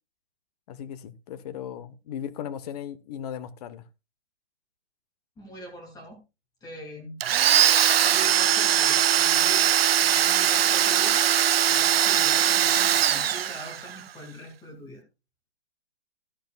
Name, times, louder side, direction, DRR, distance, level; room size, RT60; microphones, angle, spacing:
voice 1, 0.7-3.8, left 9 dB, 35° left, 1.1 m, -37 dB
voice 2, 5.4-6.2 6.6-7.2 8.0-9.7 10.0-11.2 11.6-15.0, right 1 dB, 10° left, 2.5 m, -42 dB
Domestic sounds home sounds, 7.2-14.0, right 10 dB, 65° right, 0.6 m, -21 dB
13.5 x 10.5 x 2.4 m
hypercardioid pair, 145°, 33 cm